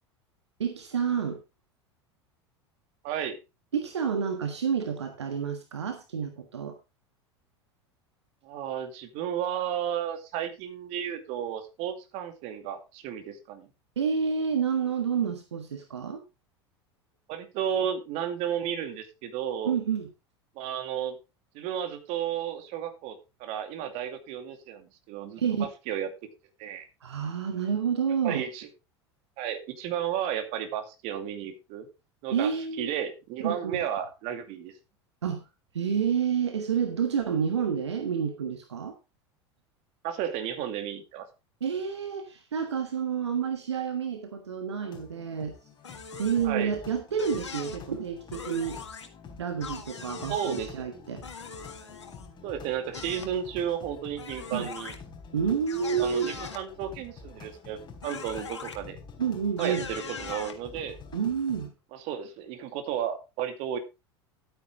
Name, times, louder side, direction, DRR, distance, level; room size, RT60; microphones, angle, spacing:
voice 1, 0.6-1.4 3.7-6.8 14.0-16.2 19.6-20.1 25.4-25.7 27.0-28.4 32.3-32.9 33.4-33.8 35.2-35.4 35.7-38.9 41.6-45.5 46.2-48.8 49.4-51.2 54.5-54.7 55.3-56.3 59.2-59.9 61.1-61.7, right 7 dB, 75° right, 7 dB, 1.4 m, -29 dB
voice 2, 3.0-3.4 8.4-13.7 17.3-19.8 20.6-21.2 21.5-26.1 26.6-26.9 28.2-28.7 29.4-31.9 32.2-32.5 32.8-34.7 40.0-41.3 46.4-46.7 50.3-50.9 52.4-54.9 55.8-59.0 59.6-61.0 61.9-63.8, right 9 dB, 50° right, 8 dB, 2.4 m, -33 dB
sound 1, 44.8-61.7, left 5 dB, 30° left, 4.1 m, -48 dB
sound 2, 45.8-46.5 47.2-47.8 48.3-49.1 49.6-50.7 51.2-52.3 52.9-53.3 54.2-55.0 55.7-56.6 58.0-58.8 59.6-60.6, left 5 dB, 80° left, 1.8 m, -41 dB
12.0 x 9.3 x 3.5 m, 0.26 s
figure-of-eight pair, 80°, 14 cm